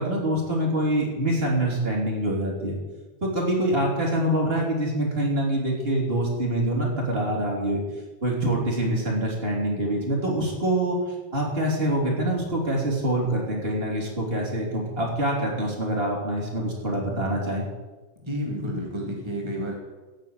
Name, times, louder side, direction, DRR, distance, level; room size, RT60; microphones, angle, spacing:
voice 1, 0.0-2.8 3.2-7.8 8.2-11.0 11.3-17.7, right 1 dB, 15° right, -2 dB, 2.9 m, -25 dB
voice 2, 18.1-19.7, equal, 30° right, -1 dB, 0.4 m, -30 dB
16.5 x 5.6 x 8.9 m, 1.2 s
omnidirectional pair, 4.6 m